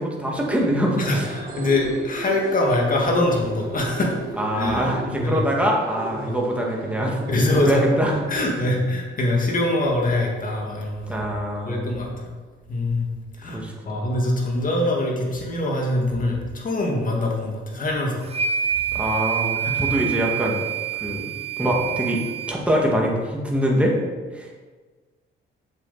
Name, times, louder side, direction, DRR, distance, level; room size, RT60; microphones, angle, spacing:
voice 1, 0.0-1.3 4.4-7.2 7.5-8.2 11.1-11.9 13.5-14.1 18.9-20.7 21.0-21.3 21.6-24.0 24.3-24.5, equal, 5° right, -2 dB, 2.1 m, -24 dB
sound 1, 0.8-8.2, right 3 dB, 45° right, 1.7 m, -36 dB
voice 2, 1.0-4.1 4.6-4.9 5.2-5.4 6.2-6.4 7.3-7.8 8.3-11.2 11.7-12.3 12.7-13.1 13.4-13.6 13.9-18.2 19.6-19.9, left 1 dB, 45° left, 0 dB, 2.1 m, -23 dB
sound 2, 18.3-22.5, right 8 dB, 30° right, 0.5 m, -27 dB
7.6 x 7.4 x 4.2 m, 1.4 s
cardioid pair, 90°, 20 cm